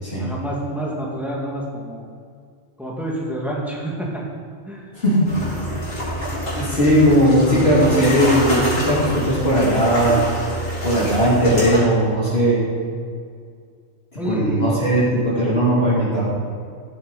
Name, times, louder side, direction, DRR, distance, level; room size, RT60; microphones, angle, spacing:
voice 1, 0.2-2.1 2.8-4.2 4.7-4.9 14.2-14.7, right 1 dB, ahead, -3 dB, 2.0 m, -27 dB
voice 2, 4.9-5.4 5.9-6.0 6.6-10.2 10.8-12.6 14.1-16.2, equal, 50° left, -9 dB, 3.3 m, -18 dB
sound 1, 5.2-11.8, equal, 75° left, 4.0 m, -26 dB
14.5 x 8.6 x 4.2 m, 2.2 s
omnidirectional pair, 1.3 m